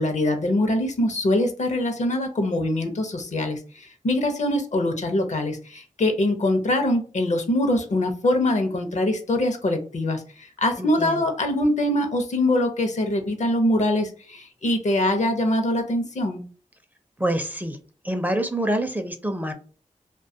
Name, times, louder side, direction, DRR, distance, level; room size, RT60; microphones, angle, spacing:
voice 1, 0.0-16.4, left 1 dB, 60° left, 6 dB, 0.6 m, -23 dB
voice 2, 10.8-11.2 17.2-17.8 18.0-19.5, right 1 dB, 15° right, 6 dB, 0.4 m, -26 dB
2.3 x 2.2 x 2.6 m, 0.38 s
cardioid pair, 55°, 14 cm